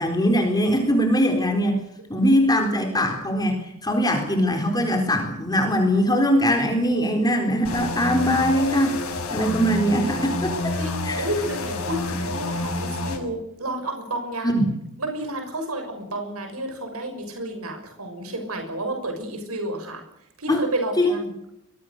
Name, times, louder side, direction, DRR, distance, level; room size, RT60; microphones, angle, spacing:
voice 1, 0.0-1.8 2.1-9.0 9.3-10.5 11.0-11.3 14.4-14.7 20.5-20.6 21.0-21.1, equal, 20° left, 3 dB, 4.1 m, -21 dB
sound 1, 7.6-13.2, left 2 dB, 90° left, 6.6 m, -28 dB
voice 2, 10.8-14.6 15.0-20.0 20.4-21.3, right 1 dB, 90° right, 5 dB, 6.4 m, -30 dB
25.5 x 21.5 x 6.7 m, 0.79 s
head